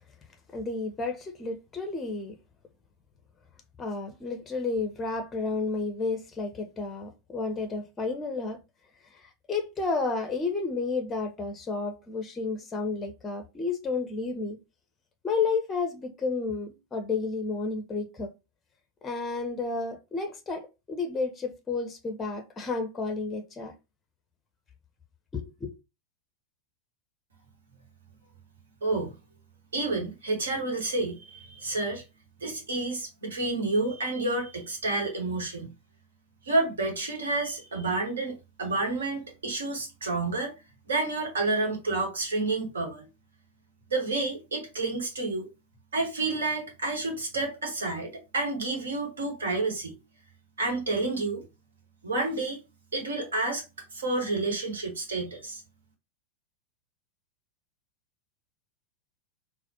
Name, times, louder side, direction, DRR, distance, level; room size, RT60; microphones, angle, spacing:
voice 1, 0.5-2.3 3.8-8.6 9.2-14.6 15.2-18.3 19.0-23.7 25.3-25.7, left 4 dB, 15° left, 0.6 m, -31 dB
voice 2, 28.8-29.1 29.7-32.0 32.4-35.7 36.4-40.5 40.9-43.1 43.9-45.5 45.9-50.0 50.6-51.4 52.0-52.6 52.9-53.6 53.9-55.6, right 2 dB, 70° right, 1.2 m, -29 dB
4.0 x 2.1 x 2.7 m
figure-of-eight pair, 90°, 0 cm